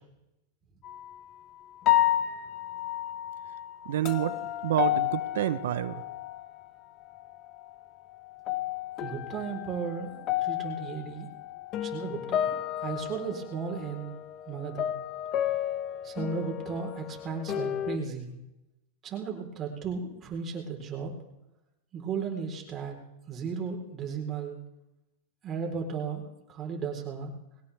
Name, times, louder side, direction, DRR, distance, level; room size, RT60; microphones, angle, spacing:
sound 1, 0.8-1.2 1.8-6.7 7.0-7.8 8.2-18.0, left 12 dB, 40° left, 1.2 m, -32 dB
voice 1, 3.9-6.0, right 12 dB, 75° right, 13 dB, 0.9 m, -29 dB
voice 2, 9.0-11.3 11.8-14.1 14.5-14.9 16.0-18.3 19.0-21.1 21.9-23.0 23.3-24.6 25.4-27.3, right 5 dB, 30° right, 1 dB, 4.0 m, -35 dB
21.0 x 17.5 x 3.5 m, 0.93 s
hypercardioid pair, 130°, 0 cm